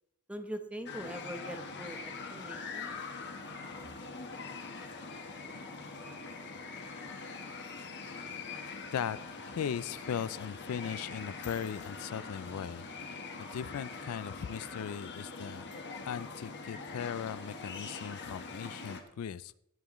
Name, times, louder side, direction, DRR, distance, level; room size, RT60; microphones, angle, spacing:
voice 1, 0.3-2.9, equal, 5° right, 7 dB, 0.9 m, -42 dB
sound 1, 0.9-19.0, left 4 dB, 50° left, 1.3 m, -43 dB
voice 2, 9.5-15.7 16.0-19.5, left 8 dB, 70° left, 18 dB, 0.4 m, -38 dB
17.0 x 9.3 x 3.1 m, 0.77 s
head